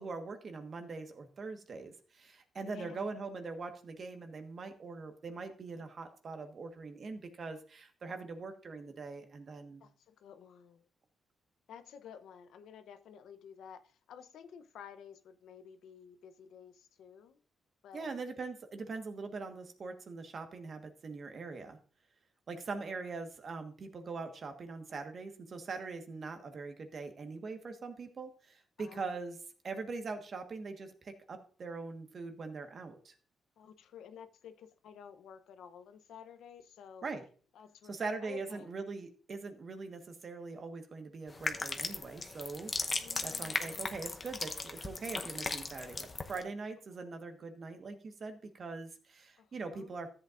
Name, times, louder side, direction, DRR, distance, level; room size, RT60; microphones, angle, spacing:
voice 1, 0.0-9.8 17.9-21.8 22.5-29.4 29.6-33.1 37.0-37.2 37.9-42.7 43.2-50.1, right 4 dB, 50° right, 7 dB, 1.3 m, -42 dB
voice 2, 2.6-3.1 9.8-10.9 11.7-17.4 17.8-18.2 28.8-29.1 33.6-37.1 37.5-38.7 42.9-44.0 46.9-47.1 49.4-49.9, left 7 dB, 80° left, 10 dB, 0.7 m, -52 dB
sound 1, 41.3-46.4, left 3 dB, 30° left, 0.8 m, -37 dB
13.5 x 7.9 x 2.5 m, 0.42 s
cardioid pair, 90°, 0 cm